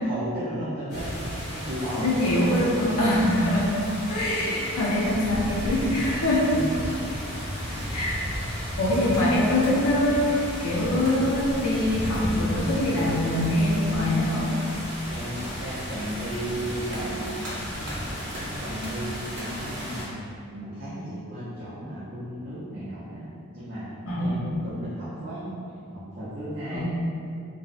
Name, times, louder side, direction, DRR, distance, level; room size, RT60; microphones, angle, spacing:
voice 1, 0.0-2.1 6.5-6.6 6.9-7.0 7.6-7.9 8.2-8.3 15.1-17.3 17.7-20.2 20.5-23.3 23.5-25.5 25.9-26.8, equal, 40° right, -11 dB, 0.4 m, -35 dB
sound 1, 0.9-20.0, equal, 45° left, 1.1 m, -33 dB
voice 2, 2.0-3.8 4.1-6.5 7.9-8.2 8.8-14.5 24.1-24.4 26.7-26.8, left 1 dB, 85° left, -5 dB, 0.6 m, -24 dB
sound 2, 9.1-9.9 10.5-10.7 11.0-11.4 11.9-13.3 13.6-13.9 14.5-14.8 15.4-15.7 16.3-18.1 18.3-19.1 19.4-20.0, right 1 dB, 75° right, 0.9 m, -44 dB
2.5 x 2.0 x 2.4 m, 2.5 s
head